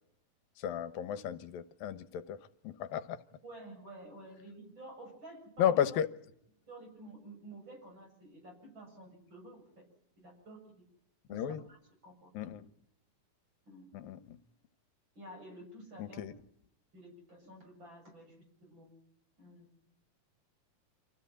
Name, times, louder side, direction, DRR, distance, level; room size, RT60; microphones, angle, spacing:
voice 1, 0.6-2.4 2.6-3.2 5.6-6.1 11.3-11.6 12.3-12.7 13.9-14.4 16.0-16.3, left 9 dB, 80° left, 2.8 m, -33 dB
voice 2, 3.3-5.8 6.7-9.8 10.2-10.8 11.3-11.8 12.0-12.6 13.7-14.0 15.2-16.2 16.9-18.9 19.4-19.7, right 1 dB, 30° right, 7.9 m, -51 dB
26.5 x 16.0 x 9.0 m
omnidirectional pair, 4.2 m